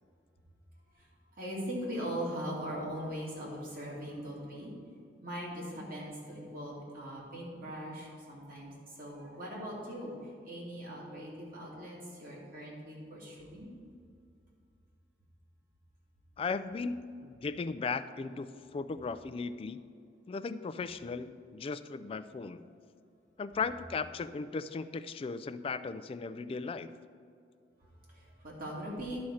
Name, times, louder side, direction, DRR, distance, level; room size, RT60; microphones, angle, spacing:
voice 1, 0.9-4.7 5.2-13.7 27.8-29.2, equal, 55° right, -4 dB, 2.4 m, -40 dB
voice 2, 16.4-19.8 20.3-22.6 23.4-26.9, left 4 dB, 30° left, 12 dB, 0.3 m, -37 dB
10.5 x 4.3 x 6.4 m, 2.3 s
head